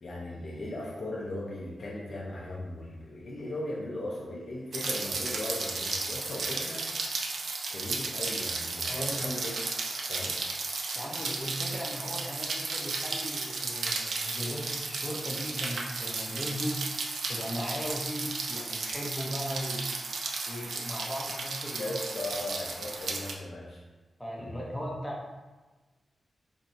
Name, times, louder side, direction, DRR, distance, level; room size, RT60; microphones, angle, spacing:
voice 1, 0.0-6.9 7.7-9.6 10.1-10.4 21.8-23.8 24.4-24.8, left 1 dB, 60° left, -5 dB, 0.6 m, -38 dB
Rain, 4.7-23.3, right 3 dB, 75° right, 0.5 m, -34 dB
voice 2, 8.9-9.2 10.9-16.8 17.3-19.9 20.5-21.9 24.2-25.4, equal, 5° left, -4 dB, 0.8 m, -37 dB
4.5 x 2.6 x 2.6 m, 1.2 s
wide cardioid pair, 95°, 0 cm